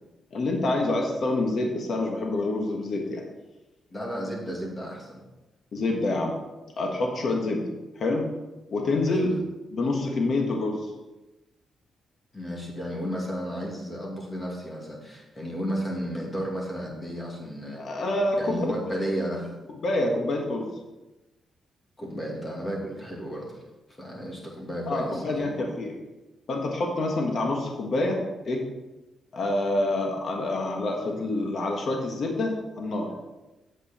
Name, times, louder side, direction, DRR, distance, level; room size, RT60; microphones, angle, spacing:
voice 1, 0.3-3.2 5.7-6.3 6.8-7.7 8.0-8.3 8.7-9.3 9.7-10.9 17.7-18.6 19.8-20.7 24.9-25.9 26.5-28.6 29.3-33.1, left 2 dB, 50° left, 1 dB, 1.4 m, -27 dB
voice 2, 3.9-5.2 9.1-9.3 12.3-17.8 18.4-19.5 22.0-23.6 24.0-25.7 32.9-33.0, equal, 20° left, -2 dB, 2.3 m, -33 dB
8.4 x 8.1 x 4.3 m, 1.1 s
cardioid pair, 140°, 0 cm